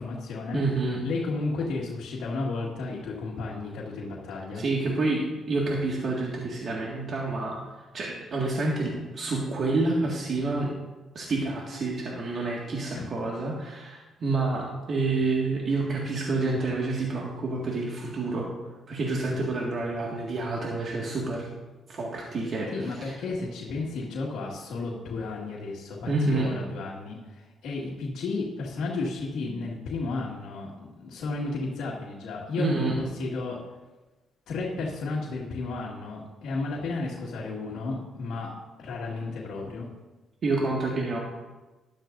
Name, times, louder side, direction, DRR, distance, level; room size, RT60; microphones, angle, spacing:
voice 1, 0.0-0.6 1.0-4.6 12.9-13.0 22.7-33.6 34.5-38.5 38.8-39.9, left 3 dB, 75° left, -5 dB, 2.0 m, -33 dB
voice 2, 0.5-1.0 4.5-7.6 7.9-10.7 11.1-18.5 18.9-21.5 21.9-23.1 26.1-26.5 32.6-33.0 40.4-41.2, right 3 dB, 55° right, -3 dB, 1.9 m, -28 dB
12.5 x 12.0 x 2.7 m, 1.2 s
cardioid pair, 90°, 0 cm